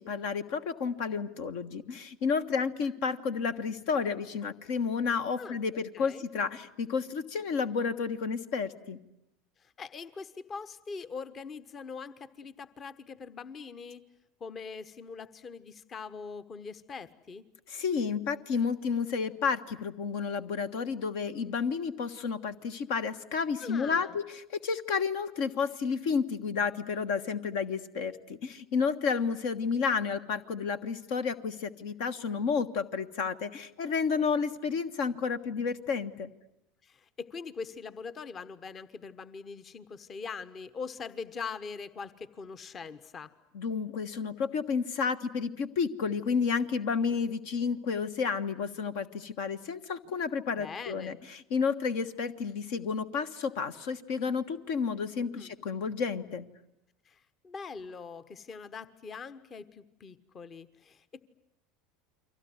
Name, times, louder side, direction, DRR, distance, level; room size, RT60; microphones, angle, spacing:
voice 1, 0.0-9.0 17.7-36.3 43.5-56.4, left 5 dB, 60° left, 11 dB, 1.3 m, -31 dB
voice 2, 5.9-6.2 9.6-14.0 14.4-17.4 23.6-24.2 32.5-32.6 36.8-43.3 50.5-51.2 55.3-55.5 57.0-61.2, left 5 dB, 35° left, 14 dB, 1.3 m, -42 dB
30.0 x 24.0 x 8.0 m, 0.85 s
figure-of-eight pair, 75°, 0 cm